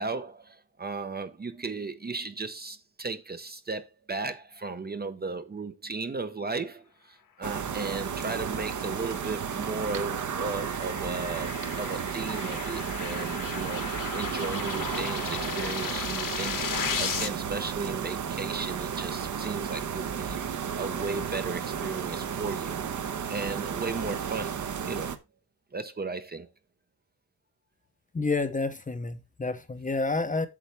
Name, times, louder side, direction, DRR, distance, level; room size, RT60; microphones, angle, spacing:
voice 1, 0.0-20.4 20.7-22.9 23.3-25.1 25.7-26.5, right 3 dB, 25° right, 0.7 m, -35 dB
sound 1, 7.4-25.2, right 7 dB, 50° right, 0.9 m, -33 dB
sound 2, 8.4-17.3, left 7 dB, 55° left, 1.3 m, -36 dB
voice 2, 28.1-30.5, left 3 dB, 20° left, 0.7 m, -29 dB
8.5 x 7.0 x 3.3 m
wide cardioid pair, 140°, 38 cm